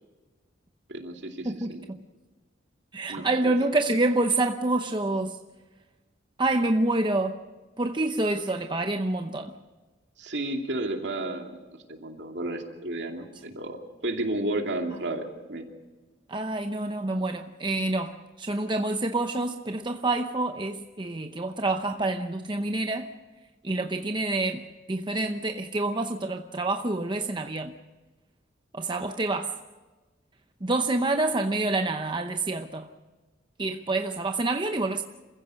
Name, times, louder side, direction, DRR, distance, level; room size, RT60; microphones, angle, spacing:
voice 1, 0.9-1.9 3.1-3.5 10.2-11.6 11.9-13.8 14.0-15.7, right 1 dB, 65° right, 2.7 m, -32 dB
voice 2, 1.4-2.0 2.9-5.4 6.4-7.4 7.8-9.6 16.3-23.1 23.6-27.7 28.7-29.6 30.6-32.9 33.6-35.0, right 2 dB, 25° right, 0.8 m, -27 dB
27.5 x 15.5 x 6.4 m
head